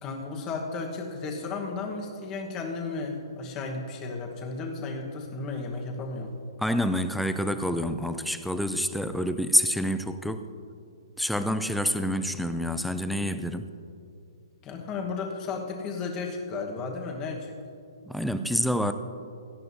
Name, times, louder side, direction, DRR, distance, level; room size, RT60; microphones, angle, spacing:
voice 1, 0.0-6.3 14.6-17.6, left 4 dB, 20° left, 2 dB, 1.2 m, -34 dB
voice 2, 6.6-10.5 11.2-13.7 18.1-18.9, equal, ahead, 9 dB, 0.3 m, -27 dB
17.0 x 13.0 x 2.7 m, 2.6 s
hypercardioid pair, 165°, 3 cm